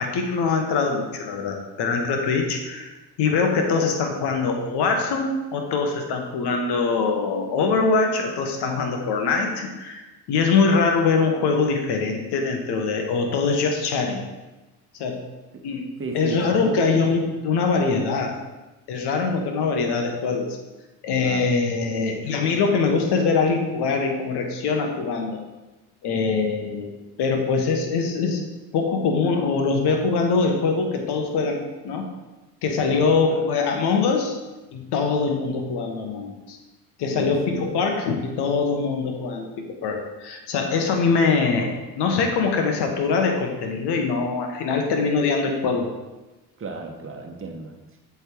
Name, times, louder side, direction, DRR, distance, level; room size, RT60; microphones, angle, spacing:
voice 1, 0.0-2.9 3.2-14.2 14.9-15.2 15.6-15.9 16.1-18.3 18.9-20.5 21.0-25.4 26.0-28.4 28.7-32.0 32.6-34.4 34.7-36.6 37.0-45.9, left 4 dB, 65° left, 3 dB, 1.3 m, -23 dB
voice 2, 16.0-16.9 21.2-21.5 21.9-22.4 32.9-33.5 37.1-37.7 46.6-47.8, right 4 dB, 30° right, 3 dB, 1.2 m, -34 dB
7.9 x 3.7 x 4.6 m, 1.1 s
hypercardioid pair, 60°, 43 cm